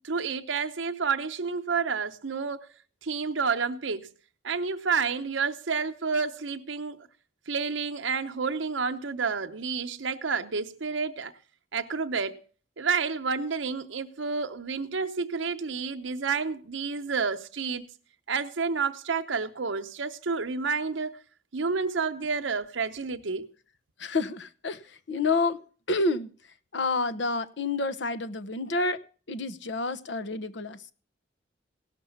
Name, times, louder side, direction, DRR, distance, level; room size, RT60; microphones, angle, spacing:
voice 1, 0.0-2.7 3.0-4.1 4.4-7.1 7.5-11.3 11.7-12.4 12.8-17.9 18.3-21.2 21.5-23.5, right 5 dB, 80° right, 0.9 m, -30 dB
voice 2, 24.0-25.6 25.9-26.3 26.7-29.0 29.3-30.8, left 3 dB, 70° left, 0.9 m, -29 dB
17.5 x 6.0 x 7.1 m
head